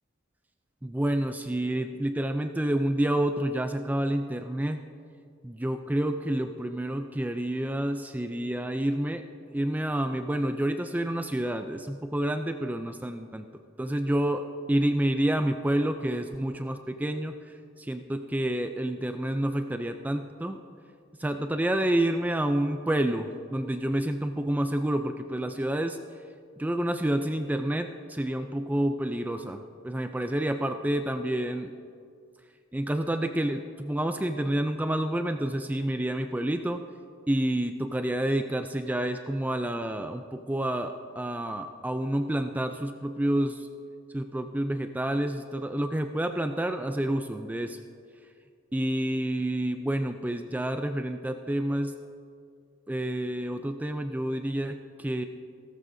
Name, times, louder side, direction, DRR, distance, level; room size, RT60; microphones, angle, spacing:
voice 1, 0.8-4.8 5.4-9.2 9.5-13.4 13.8-17.3 17.8-20.6 21.2-26.0 26.6-31.7 32.7-36.8 37.3-43.7 44.1-47.8 48.7-51.9 52.9-55.2, right 1 dB, 10° right, 7 dB, 0.4 m, -29 dB
17.0 x 14.0 x 2.7 m, 2.2 s
head